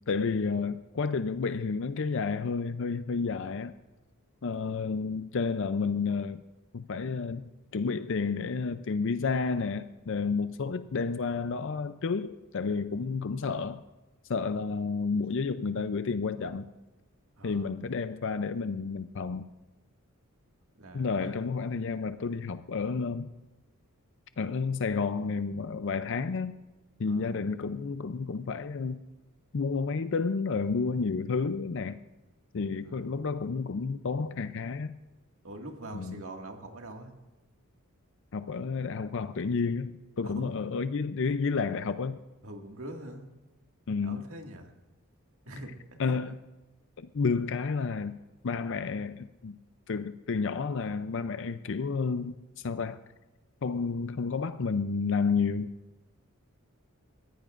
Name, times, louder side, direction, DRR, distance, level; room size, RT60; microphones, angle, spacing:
voice 1, 0.1-3.8 4.4-6.4 6.7-7.4 7.7-13.8 14.3-16.7 17.4-19.5 20.9-23.3 24.4-26.6 27.0-29.0 29.5-32.0 32.5-35.0 35.9-36.2 38.3-42.2 43.9-44.2 46.0-46.4 47.0-48.2 48.4-49.6 49.9-53.0 53.6-55.7, left 4 dB, 60° left, 11 dB, 0.5 m, -31 dB
voice 2, 17.4-17.7 20.8-21.4 27.1-27.3 32.8-33.1 35.4-37.1 40.2-40.5 42.4-43.3 44.0-44.7 45.5-46.2, right 1 dB, 70° right, 2 dB, 2.0 m, -44 dB
21.5 x 15.0 x 2.5 m, 1.1 s
head